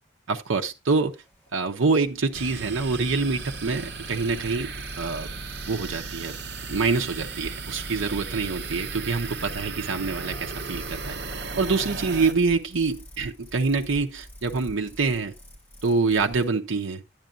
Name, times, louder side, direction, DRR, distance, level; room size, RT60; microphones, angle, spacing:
voice 1, 0.3-1.2 1.5-5.4 5.7-6.4 6.7-11.1 11.6-15.3 15.8-17.0, right 4 dB, 75° right, 0.7 m, -26 dB
sound 1, 1.1-16.5, equal, 10° left, 2.2 m, -47 dB
sound 2, 2.3-12.3, right 4 dB, 55° right, 1.0 m, -36 dB
10.5 x 9.6 x 2.5 m
head